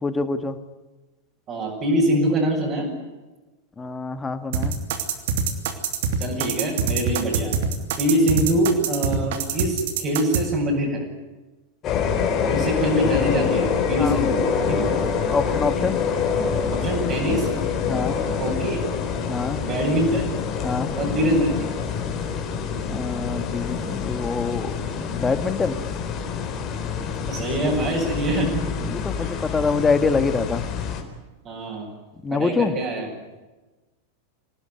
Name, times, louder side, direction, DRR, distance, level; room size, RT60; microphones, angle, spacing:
voice 1, 0.0-0.6 3.8-4.7 14.0-14.2 15.3-16.0 17.9-18.2 19.3-19.6 20.6-20.9 22.9-24.7 25.0-25.8 28.9-30.6 32.2-32.7, left 4 dB, 15° left, 10 dB, 2.0 m, -25 dB
voice 2, 1.5-2.9 6.2-7.5 8.0-11.0 12.4-14.9 16.7-17.5 18.4-18.8 19.6-20.3 21.0-21.7 27.3-28.9 29.2-29.3 31.4-31.9 32.3-33.1, right 1 dB, 30° right, -4 dB, 7.5 m, -24 dB
sound 1, 4.5-10.4, right 6 dB, 55° right, 2.9 m, -24 dB
sound 2, 11.8-31.0, left 6 dB, 30° left, 4.1 m, -26 dB
26.5 x 18.5 x 9.7 m, 1.2 s
figure-of-eight pair, 90°, 0 cm